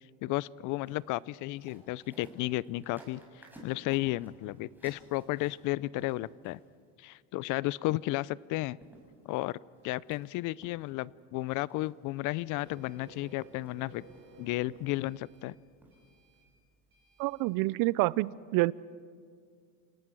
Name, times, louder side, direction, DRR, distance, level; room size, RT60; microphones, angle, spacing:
voice 1, 0.2-3.2 3.6-6.6 7.0-8.8 9.3-9.6 9.8-14.0 14.4-15.6, left 18 dB, 55° left, 23 dB, 0.5 m, -33 dB
sound 1, 0.9-6.9 8.4-8.5 8.8-10.2 10.6-11.2 11.5-11.9 12.4-12.7 13.0-13.7 14.1-14.6 14.9-15.4 15.8-16.0 16.3-16.4, right 1 dB, 5° right, 5.6 m, -56 dB
Printer, 12.5-17.5, right 3 dB, 30° right, 6.4 m, -56 dB
voice 2, 17.2-18.7, right 20 dB, 60° right, 22 dB, 0.6 m, -27 dB
28.0 x 18.0 x 6.2 m, 2.1 s
supercardioid pair, 120°, 38 cm